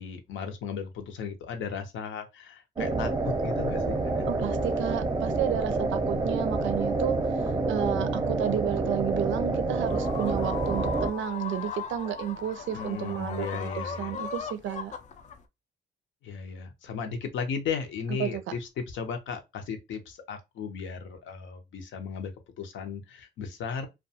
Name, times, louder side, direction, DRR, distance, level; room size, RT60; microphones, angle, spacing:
voice 1, 0.0-4.3 12.7-14.1 16.2-22.3 22.6-23.9, left 6 dB, 75° left, 0.7 m, -35 dB
sound 1, 2.8-11.1, right 3 dB, 20° right, 0.6 m, -28 dB
voice 2, 2.8-3.1 4.3-7.2 7.7-14.9 18.2-18.4, right 10 dB, 75° right, 0.4 m, -32 dB
sound 2, 9.9-15.4, left 7 dB, 40° left, 0.4 m, -38 dB
2.3 x 2.2 x 2.7 m
cardioid pair, 90°, 20 cm